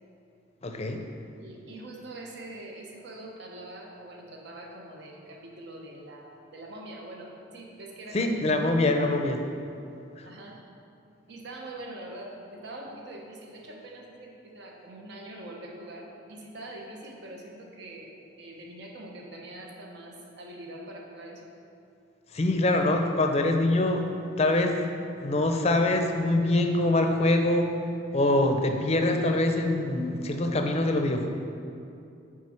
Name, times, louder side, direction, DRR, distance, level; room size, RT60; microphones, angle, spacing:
voice 1, 0.6-1.0 8.1-9.4 10.2-10.3 22.3-24.1 24.4-24.8 25.2-27.8 28.1-31.3, left 2 dB, 35° left, 4 dB, 0.5 m, -24 dB
voice 2, 1.4-8.5 10.3-10.6 11.3-18.1 18.4-21.5, right 1 dB, 65° right, 0 dB, 1.0 m, -43 dB
9.6 x 3.7 x 4.4 m, 2.6 s
head